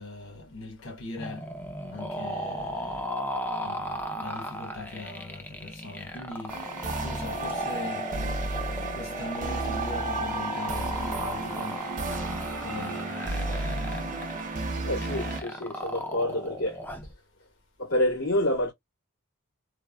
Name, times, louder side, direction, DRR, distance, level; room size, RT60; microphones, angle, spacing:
voice 1, 0.0-1.5 1.9-3.1 3.6-6.6 7.0-8.1 8.9-11.8 12.6-13.7, left 2 dB, 60° left, 1.1 m, -40 dB
sound 1, 1.2-17.1, equal, 10° left, 0.4 m, -35 dB
sound 2, 6.5-15.4, right 3 dB, 35° right, 0.7 m, -33 dB
voice 2, 14.8-16.8 17.8-18.7, left 1 dB, 85° left, 1.7 m, -27 dB
3.2 x 2.0 x 2.2 m
head